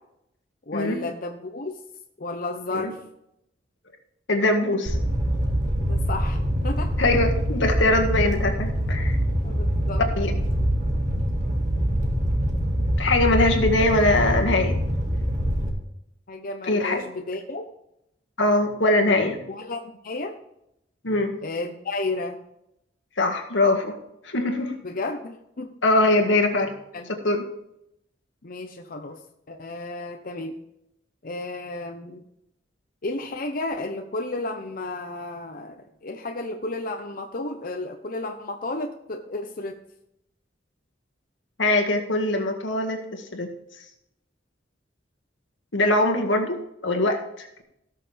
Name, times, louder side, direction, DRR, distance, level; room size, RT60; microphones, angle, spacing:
voice 1, 0.7-1.7 2.2-3.0 5.9-6.9 9.4-10.4 16.3-17.6 19.5-20.3 21.4-22.4 24.8-25.7 26.9-27.1 28.4-29.2 29.5-30.6 31.2-32.2 33.0-39.7, left 2 dB, 50° left, 4 dB, 0.9 m, -32 dB
voice 2, 4.3-5.0 7.0-9.2 10.2-10.3 13.0-14.7 16.6-17.0 18.4-19.4 21.0-21.3 23.2-24.0 24.2-24.8 25.8-26.7 27.2-27.4 41.6-43.5 45.7-47.6, left 2 dB, 85° left, 4 dB, 1.9 m, -22 dB
Fire, 4.9-15.7, equal, 40° right, 2.0 m, -24 dB
17.0 x 6.7 x 3.4 m, 0.79 s
head